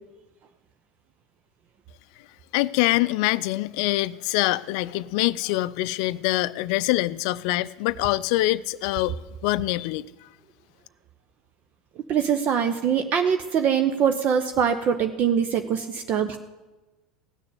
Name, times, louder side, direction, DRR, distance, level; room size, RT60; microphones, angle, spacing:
voice 1, 2.5-9.1 9.4-10.0, left 18 dB, 60° left, 0.4 m, -24 dB
voice 2, 12.1-16.4, right 7 dB, 45° right, 0.8 m, -23 dB
16.0 x 6.7 x 8.3 m
hypercardioid pair, 75°, 4 cm